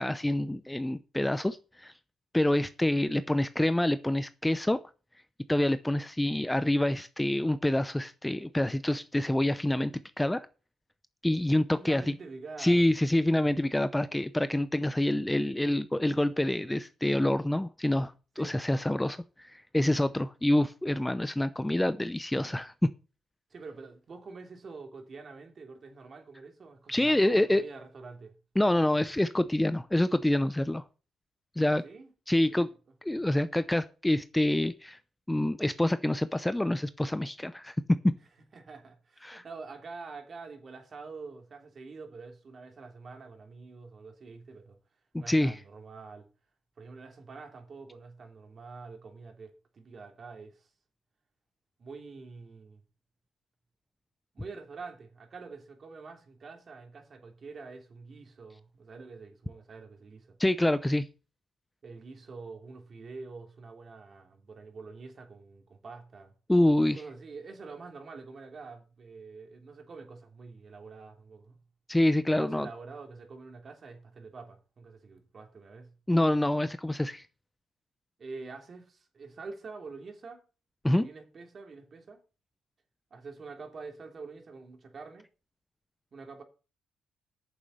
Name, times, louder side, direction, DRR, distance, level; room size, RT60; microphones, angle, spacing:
voice 1, 0.0-1.9 2.3-4.8 5.5-10.5 11.2-12.2 12.6-22.9 26.9-27.6 28.6-30.8 31.6-31.8 32.3-32.7 33.0-35.0 35.3-38.1 39.2-39.4 45.1-45.6 60.4-61.1 66.5-67.0 71.9-72.7 76.1-77.3 80.8-81.1, left 1 dB, 10° left, 0.7 m, -27 dB
voice 2, 11.7-12.8 18.4-18.6 23.5-28.3 31.8-32.1 32.5-32.7 38.5-44.8 45.2-46.2 46.8-50.7 51.8-52.8 54.3-60.4 61.8-66.3 66.9-71.6 72.3-75.9 78.2-80.4 81.0-82.2 83.1-85.3 86.1-86.4, right 4 dB, 45° right, 3.1 m, -46 dB
8.9 x 7.1 x 6.7 m
cardioid pair, 90°, 0 cm